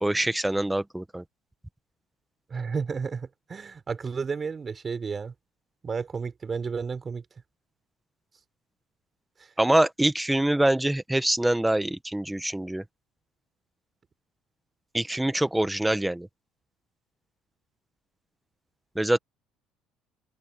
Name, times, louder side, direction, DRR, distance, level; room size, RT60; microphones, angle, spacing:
voice 1, 0.0-1.2 9.6-12.8 14.9-16.3 18.9-19.2, right 1 dB, 5° right, 1.4 m, -24 dB
voice 2, 2.5-5.3 5.8-7.3 9.4-9.5, right 5 dB, 30° right, 5.2 m, -32 dB
open air
supercardioid pair, 90°, 0 cm